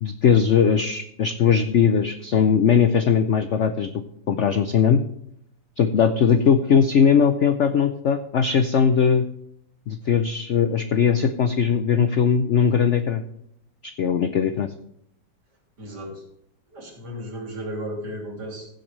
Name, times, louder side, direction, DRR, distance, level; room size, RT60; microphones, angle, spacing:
voice 1, 0.0-3.9 4.3-5.0 5.8-9.3 9.9-13.2 13.8-14.7, left 7 dB, 70° left, 9 dB, 0.6 m, -19 dB
voice 2, 15.8-16.2 16.7-18.7, equal, 60° right, -1 dB, 3.6 m, -34 dB
15.5 x 7.9 x 3.2 m, 0.75 s
omnidirectional pair, 2.0 m